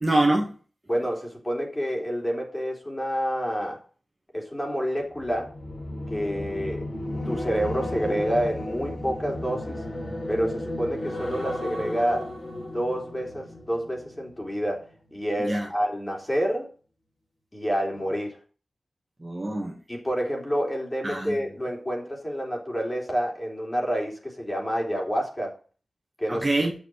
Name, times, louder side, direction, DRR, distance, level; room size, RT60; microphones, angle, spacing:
voice 1, 0.0-0.5 15.4-15.7 19.2-19.8 21.0-21.4 26.3-26.7, right 2 dB, 25° right, 0 dB, 2.1 m, -24 dB
voice 2, 0.9-3.8 4.3-5.5 6.1-6.9 7.3-9.8 10.3-12.3 12.7-16.7 17.5-18.4 19.9-25.5 26.2-26.4, equal, 15° left, -1 dB, 3.6 m, -28 dB
sound 1, 5.1-14.5 14.9-15.2, left 1 dB, 45° left, 4.0 m, -34 dB
9.6 x 7.1 x 5.1 m, 0.38 s
wide cardioid pair, 100°, 0 cm